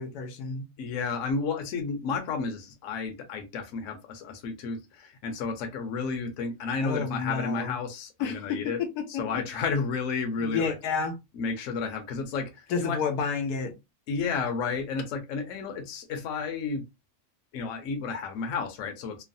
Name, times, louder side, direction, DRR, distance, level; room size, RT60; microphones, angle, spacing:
voice 1, 0.0-0.7 6.8-7.8 8.2-9.4 10.4-11.2 12.7-13.7, left 5 dB, 85° left, 1.2 m, -30 dB
voice 2, 0.8-8.8 9.1-10.7 11.4-13.0 14.1-16.8 17.5-19.2, left 5 dB, 65° left, 1.0 m, -32 dB
3.1 x 2.0 x 2.5 m
omnidirectional pair, 1.6 m